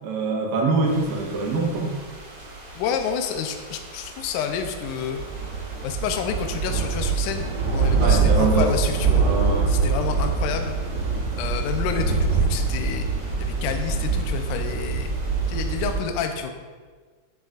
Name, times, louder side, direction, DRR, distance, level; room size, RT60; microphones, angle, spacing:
voice 1, 0.0-2.0 7.9-8.7 9.1-9.7, right 3 dB, 85° right, -1 dB, 2.6 m, -24 dB
sound 1, 0.9-16.0, right 4 dB, 60° right, 1.0 m, -25 dB
voice 2, 2.8-5.2 5.8-9.3 9.7-10.7 11.4-13.1 13.4-15.2 15.5-16.5, left 7 dB, 80° left, 5 dB, 2.0 m, -29 dB
9.1 x 6.2 x 2.4 m, 1.5 s
omnidirectional pair, 4.0 m